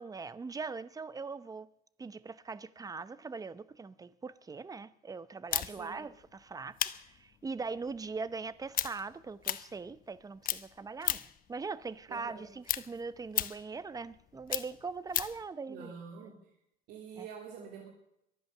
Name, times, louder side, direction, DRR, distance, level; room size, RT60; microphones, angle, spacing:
voice 1, 0.0-1.7 2.0-15.9 17.2-17.3, right 4 dB, 20° right, 0.8 m, -41 dB
sound 1, 5.5-10.2 10.4-11.5 11.8-15.4, left 11 dB, 55° left, 0.9 m, -36 dB
voice 2, 5.6-6.0 12.1-12.4 15.7-16.3 16.9-17.9, right 6 dB, 85° right, 3.0 m, -46 dB
22.5 x 8.7 x 6.7 m
cardioid pair, 110°, 17 cm